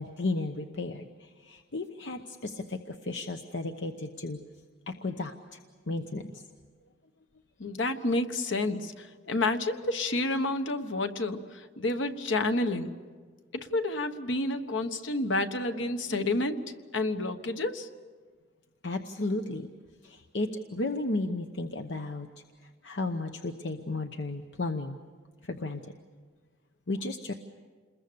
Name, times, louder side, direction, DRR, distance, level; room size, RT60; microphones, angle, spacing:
voice 1, 0.0-4.4 4.9-5.6 5.9-6.4 18.8-19.7 20.0-22.3 22.6-25.0 25.4-25.9 26.9-27.3, left 2 dB, 70° left, 6 dB, 1.0 m, -34 dB
voice 2, 7.6-11.4 11.8-12.9 13.5-16.6 16.9-17.9, left 2 dB, 90° left, 8 dB, 1.3 m, -29 dB
28.5 x 21.5 x 7.0 m, 1.5 s
head